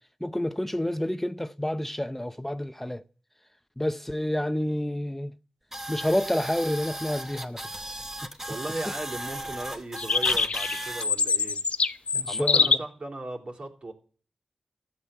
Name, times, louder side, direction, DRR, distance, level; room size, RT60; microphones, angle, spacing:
voice 1, 0.2-3.0 3.8-5.3 5.9-7.6 12.1-12.8, left 1 dB, 10° left, 0.8 m, -29 dB
sound 1, 5.7-11.1, right 1 dB, 20° right, 2.4 m, -36 dB
voice 2, 8.5-11.6 12.0-13.9, right 2 dB, 55° right, 3.8 m, -37 dB
sound 2, 10.0-12.8, left 5 dB, 70° left, 0.8 m, -24 dB
13.5 x 7.6 x 9.0 m
cardioid pair, 40°, 2 cm